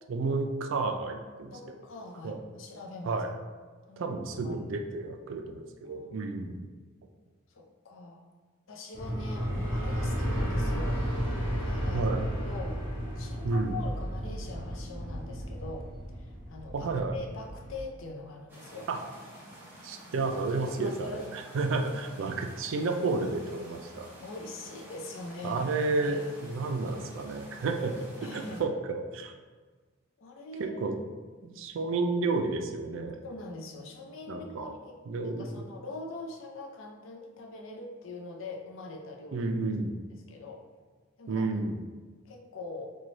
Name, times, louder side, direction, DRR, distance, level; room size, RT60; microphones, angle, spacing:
voice 1, 0.1-1.5 2.2-2.4 3.0-3.3 4.0-6.7 11.9-12.2 13.4-13.8 16.7-17.2 18.9-19.0 19.8-24.1 25.4-29.3 30.8-31.0 31.4-33.2 34.3-34.7 35.1-35.5 39.3-40.0 41.3-41.8, right 3 dB, 70° right, 4 dB, 0.3 m, -31 dB
voice 2, 1.5-3.2 3.9-4.6 5.8-6.3 7.5-8.2 8.7-11.0 11.6-12.1 12.4-12.8 13.2-15.9 16.1-18.9 20.8-21.3 24.2-25.6 26.0-26.3 28.2-28.7 30.2-30.8 33.2-39.5 40.1-40.6 41.2-41.5 42.3-43.0, left 2 dB, 70° left, 1 dB, 0.5 m, -43 dB
sound 1, 8.9-17.8, equal, 20° left, 1.1 m, -33 dB
sound 2, 18.5-28.6, right 1 dB, 10° right, 0.6 m, -49 dB
3.1 x 2.2 x 3.9 m, 1.4 s
head